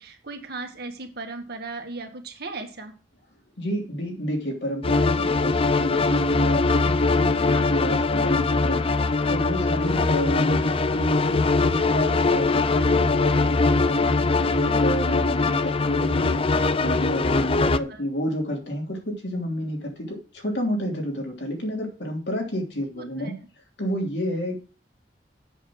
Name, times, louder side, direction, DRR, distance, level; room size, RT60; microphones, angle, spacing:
voice 1, 0.0-3.0 7.5-7.7 17.6-18.0 23.0-23.4, right 3 dB, 60° right, 4 dB, 1.9 m, -37 dB
voice 2, 3.6-16.4 16.8-23.4 23.8-24.6, equal, 65° left, 1 dB, 3.2 m, -29 dB
sound 1, 4.8-17.8, left 3 dB, 30° left, 0.5 m, -22 dB
7.9 x 6.9 x 6.0 m, 0.36 s
head